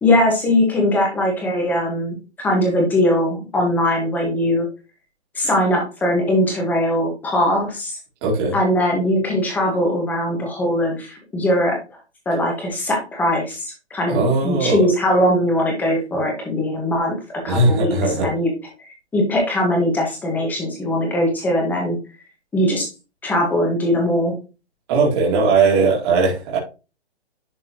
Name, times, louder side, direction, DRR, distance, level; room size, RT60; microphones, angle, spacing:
voice 1, 0.0-2.2 2.4-4.7 5.3-8.0 8.5-11.8 12.2-17.1 17.4-17.9 18.2-18.5 19.1-22.0 22.5-22.9 23.2-24.3, left 1 dB, 5° left, 0 dB, 1.5 m, -20 dB
voice 2, 8.2-8.6 14.1-14.9 17.5-18.3 24.9-26.6, right 3 dB, 25° right, -3 dB, 2.4 m, -18 dB
11.0 x 4.4 x 3.0 m, 0.31 s
hypercardioid pair, 165°, 33 cm